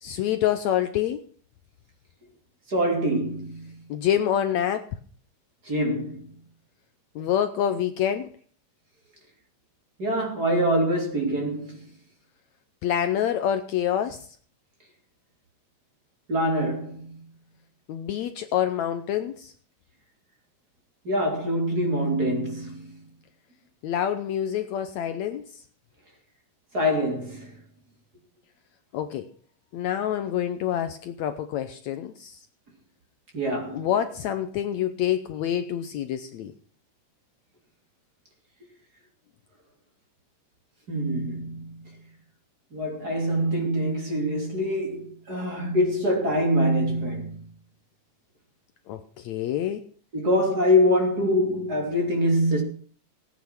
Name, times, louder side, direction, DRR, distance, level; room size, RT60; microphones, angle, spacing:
voice 1, 0.0-1.2 3.9-5.0 7.2-8.3 12.8-14.3 17.9-19.5 23.8-25.6 28.9-29.3 29.7-32.4 33.7-36.5 48.9-49.8, left 10 dB, 70° left, 1.9 m, -27 dB
voice 2, 2.7-3.7 5.7-6.3 10.0-11.8 16.3-17.2 21.1-22.9 26.7-27.5 33.3-33.9 40.9-41.8 42.7-47.4 50.1-52.6, equal, 30° right, 3.4 m, -24 dB
17.5 x 9.3 x 5.9 m
omnidirectional pair, 3.7 m